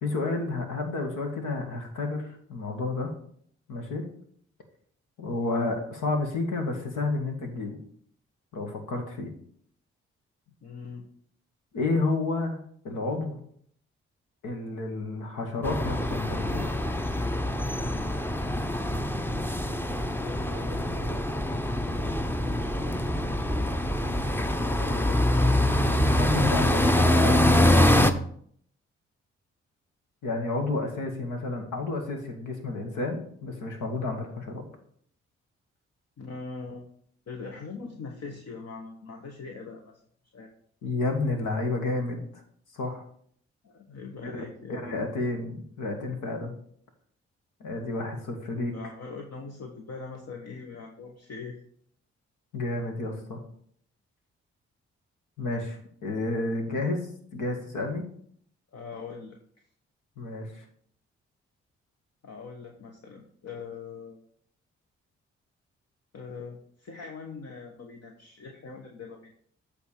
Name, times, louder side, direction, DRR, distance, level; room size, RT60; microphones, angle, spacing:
voice 1, 0.0-3.2 3.7-4.1 5.2-7.8 8.5-9.3 11.7-12.6 12.8-13.4 14.4-16.9 26.1-27.3 30.2-34.6 40.8-42.2 42.7-43.0 44.2-46.5 47.6-48.7 52.5-53.4 55.4-57.1 57.3-58.0 60.2-60.6, left 2 dB, 75° left, 4 dB, 1.6 m, -30 dB
voice 2, 10.5-11.1 20.2-21.2 24.8-26.2 36.2-36.8 37.3-40.0 40.3-40.5 43.6-45.0 48.7-51.6 58.7-59.4 62.2-64.2 66.1-69.3, left 4 dB, 55° left, 2 dB, 1.1 m, -42 dB
sound 1, 15.6-28.1, left 1 dB, 5° left, 0.7 m, -24 dB
8.3 x 3.5 x 6.4 m, 0.62 s
hypercardioid pair, 40°, 31 cm